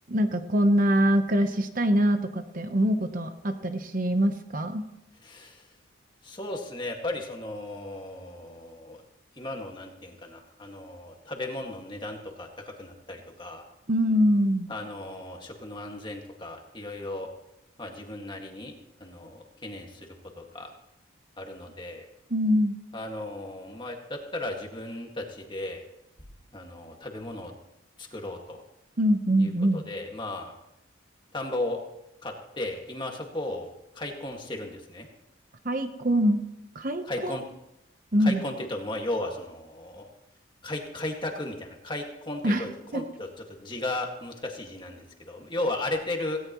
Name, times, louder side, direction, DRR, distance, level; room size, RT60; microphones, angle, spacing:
voice 1, 0.1-4.9 13.9-14.7 22.3-22.8 29.0-29.8 35.6-36.4 36.7-37.4 38.1-38.4 42.4-42.7 42.9-43.0, equal, 45° right, 7 dB, 1.0 m, -24 dB
voice 2, 5.2-5.6 6.2-9.0 9.4-12.5 12.8-13.6 14.7-17.3 17.8-20.7 21.4-22.0 22.9-25.8 26.5-27.5 28.0-28.6 29.4-30.5 31.3-31.8 32.2-35.1 37.1-37.4 38.2-40.1 40.6-46.4, left 2 dB, 25° left, 2 dB, 2.0 m, -35 dB
17.5 x 17.0 x 3.1 m, 0.85 s
head